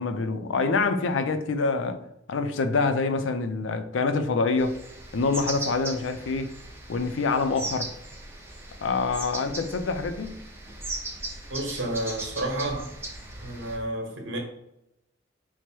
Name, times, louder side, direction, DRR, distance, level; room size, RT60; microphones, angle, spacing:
voice 1, 0.0-2.0 2.3-4.8 5.1-6.5 6.9-7.9 8.8-10.4, left 4 dB, 80° left, 0.4 m, -26 dB
sound 1, 4.6-13.8, right 2 dB, 10° right, 0.6 m, -38 dB
voice 2, 11.5-12.9 13.4-14.4, right 1 dB, 70° right, 1.1 m, -31 dB
4.5 x 2.1 x 4.4 m
head